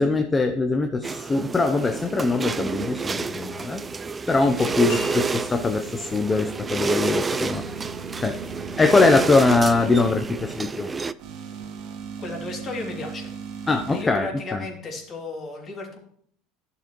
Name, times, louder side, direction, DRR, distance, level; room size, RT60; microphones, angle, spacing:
voice 1, 0.0-3.8 4.3-7.6 8.2-8.4 8.8-10.9 13.7-14.6, left 3 dB, 20° left, 5 dB, 0.7 m, -22 dB
sound 1, 1.0-11.1, right 4 dB, 20° right, 0.3 m, -29 dB
sound 2, 4.9-6.0, left 2 dB, 65° left, 3.2 m, -37 dB
sound 3, 7.4-10.1 11.2-14.0, right 6 dB, 60° right, 1.6 m, -37 dB
voice 2, 12.2-13.3 13.9-16.0, left 3 dB, 35° left, 0 dB, 2.8 m, -34 dB
11.5 x 6.8 x 3.1 m, 0.64 s
supercardioid pair, 100°, 0 cm